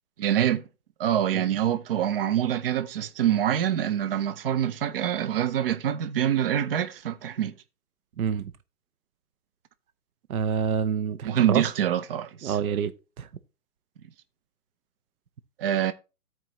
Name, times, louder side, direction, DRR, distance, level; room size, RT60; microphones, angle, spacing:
voice 1, 0.2-0.6 1.0-7.5 11.2-12.6 15.6-15.9, right 10 dB, 40° right, 0.6 m, -25 dB
voice 2, 8.2-8.5 10.3-11.6 12.4-12.9 13.2-13.3, right 7 dB, 65° right, 0.8 m, -27 dB
13.5 x 4.6 x 3.0 m
hypercardioid pair, 140°, 46 cm